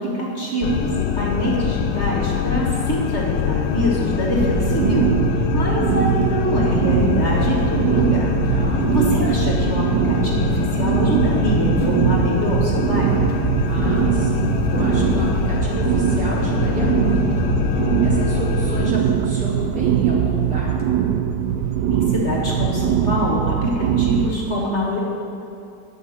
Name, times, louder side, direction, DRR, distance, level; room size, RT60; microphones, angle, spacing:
voice 1, 0.0-5.1 5.5-8.3 8.9-13.2 21.9-25.0, left 1 dB, 40° left, -3 dB, 2.2 m, -24 dB
sound 1, 0.6-18.9, left 10 dB, 80° left, 1.2 m, -24 dB
sound 2, 4.3-24.3, right 9 dB, 75° right, 1.2 m, -21 dB
sound 3, 5.8-6.5 6.8-9.8 10.4-10.5 10.9-11.1 11.4-17.5 17.7-17.8 18.1-18.2 18.6-18.8 19.2-19.3 19.6-19.9 20.2-21.2, left 1 dB, 20° left, 1.3 m, -36 dB
voice 2, 8.4-9.1 13.7-20.7, right 1 dB, 50° right, -5 dB, 3.1 m, -29 dB
13.5 x 5.9 x 9.4 m, 2.7 s
omnidirectional pair, 1.9 m